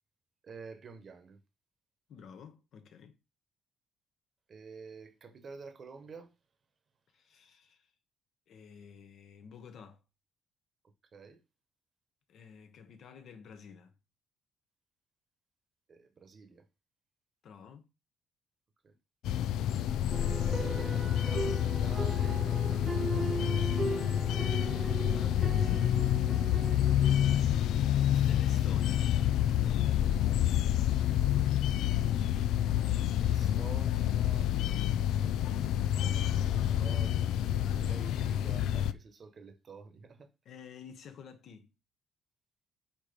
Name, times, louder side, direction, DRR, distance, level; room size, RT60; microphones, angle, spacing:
voice 1, 0.4-1.4 4.5-6.3 11.1-11.4 15.9-16.6 18.8-18.9 20.2-23.7 27.5-27.8 28.5-28.6 30.5-30.6 33.2-34.5 36.1-37.2 37.7-40.3, right 5 dB, 35° right, 1.1 m, -50 dB
voice 2, 2.1-3.2 7.1-7.9 8.5-10.0 12.3-13.9 17.4-17.9 24.5-26.1 28.2-29.1 40.4-41.7, left 6 dB, 55° left, 1.1 m, -51 dB
sound 1, 19.2-38.9, left 11 dB, 80° left, 0.4 m, -28 dB
sound 2, 20.1-30.3, right 3 dB, 20° right, 1.1 m, -39 dB
8.6 x 3.0 x 5.2 m
cardioid pair, 150°, 0 cm